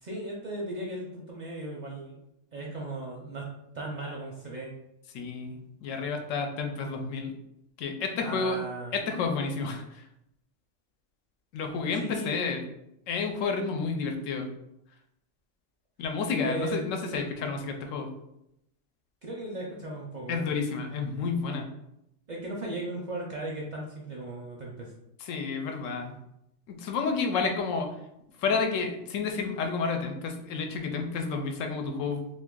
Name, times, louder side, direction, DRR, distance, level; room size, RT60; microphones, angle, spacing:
voice 1, 0.0-2.2 2.5-3.4 3.7-4.7 8.2-9.0 12.0-12.4 16.4-17.2 19.2-20.5 22.3-24.9, right 1 dB, 55° right, -2 dB, 0.5 m, -37 dB
voice 2, 5.1-7.3 7.8-8.6 8.9-10.0 11.5-12.6 13.1-14.5 16.0-18.1 20.3-21.7 25.2-26.2 26.7-27.9 28.4-32.3, left 4 dB, 90° left, 4 dB, 0.9 m, -30 dB
2.6 x 2.5 x 3.6 m, 0.82 s
omnidirectional pair, 1.3 m